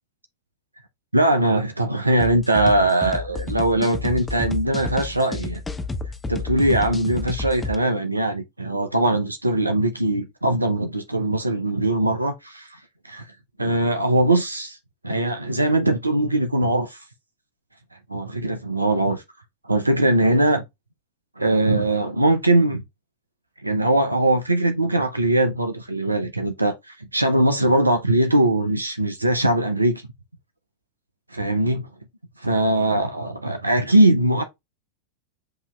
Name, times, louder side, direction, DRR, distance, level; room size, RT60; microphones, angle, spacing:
voice 1, 1.1-5.6 6.3-12.8 13.0-13.3 13.6-14.8 15.0-17.0 18.1-19.2 19.7-20.6 21.4-22.8 23.6-30.0 31.3-31.9 32.4-34.4, right 1 dB, 85° right, 0.5 m, -21 dB
sound 1, 2.2-7.8, left 3 dB, 15° left, 0.7 m, -31 dB
7.8 x 2.8 x 2.2 m
figure-of-eight pair, 90°, 0 cm